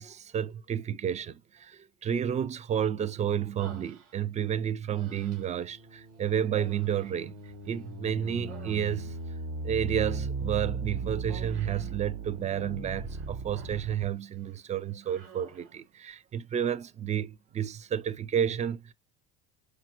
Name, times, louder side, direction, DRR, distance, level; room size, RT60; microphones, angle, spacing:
voice 1, 0.0-7.4 7.6-9.1 9.6-18.9, right 9 dB, 20° right, 0.4 m, -31 dB
Human voice, 3.6-4.5 4.9-5.7 6.5-7.9 8.2-9.3 11.3-12.0 13.0-14.0 14.4-14.6 15.0-15.8, right 6 dB, 45° right, 2.1 m, -51 dB
sound 1, 5.3-14.0, right 3 dB, 60° right, 1.7 m, -38 dB
4.9 x 2.0 x 2.9 m
supercardioid pair, 105°, 33 cm